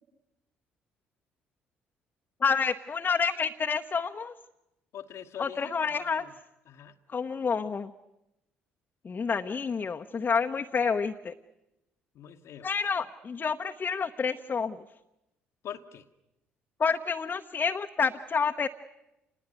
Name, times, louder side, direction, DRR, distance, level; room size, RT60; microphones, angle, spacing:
voice 1, 2.4-4.3 5.4-6.3 7.1-7.9 9.0-11.3 12.6-14.8 16.8-18.7, left 5 dB, 35° left, 4 dB, 0.9 m, -29 dB
voice 2, 4.9-6.3 6.7-7.0 12.1-12.7 15.6-16.1, left 9 dB, 55° left, 3 dB, 1.2 m, -43 dB
27.5 x 20.0 x 9.5 m, 0.92 s
figure-of-eight pair, 50°, 6 cm